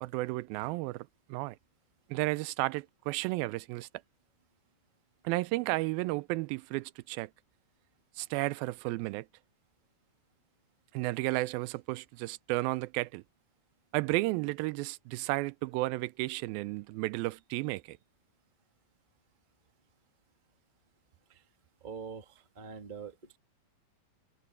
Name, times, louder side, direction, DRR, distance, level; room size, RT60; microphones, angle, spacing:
voice 1, 0.0-1.6 2.1-3.9 5.2-7.3 8.2-9.3 10.9-13.2 13.9-18.0, right 21 dB, 85° right, 2.4 m, -33 dB
voice 2, 21.8-23.4, right 6 dB, 45° right, 0.5 m, -44 dB
omnidirectional pair, 4.2 m